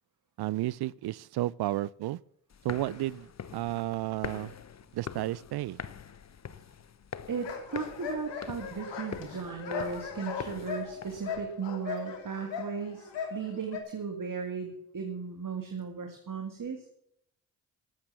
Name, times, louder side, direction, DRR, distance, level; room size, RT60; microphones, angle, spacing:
voice 1, 0.4-2.2 2.6-4.5 4.9-5.8, right 15 dB, 60° right, 0.5 m, -32 dB
sound 1, 2.5-11.3, left 7 dB, 40° left, 0.9 m, -44 dB
sound 2, 7.3-13.8, left 6 dB, 75° left, 2.7 m, -38 dB
voice 2, 7.3-16.9, right 5 dB, 45° right, 2.2 m, -36 dB
13.5 x 8.7 x 7.2 m
supercardioid pair, 45°, 43 cm